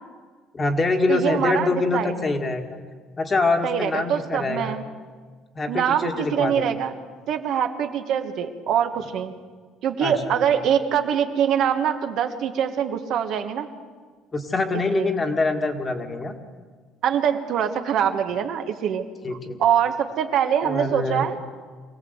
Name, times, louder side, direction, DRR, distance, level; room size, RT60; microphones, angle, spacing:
voice 1, 0.5-2.8 3.2-4.8 5.5-6.7 10.0-10.6 14.3-16.4 19.2-19.6 20.6-21.3, left 3 dB, 20° left, 5 dB, 1.8 m, -25 dB
voice 2, 1.1-2.1 3.6-4.8 5.7-6.9 7.3-9.3 9.8-13.7 14.9-15.1 17.0-19.0 19.6-21.4, right 8 dB, 55° right, 6 dB, 1.5 m, -24 dB
24.0 x 17.5 x 8.1 m, 1.5 s
cardioid pair, 160°, 0 cm